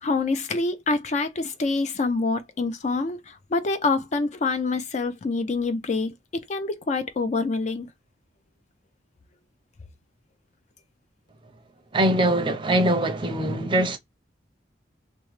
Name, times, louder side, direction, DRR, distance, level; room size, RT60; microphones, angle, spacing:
voice 1, 0.0-7.9, left 3 dB, 40° left, 0.4 m, -26 dB
voice 2, 11.9-14.0, right 1 dB, 25° right, 0.5 m, -22 dB
2.9 x 2.1 x 3.1 m
head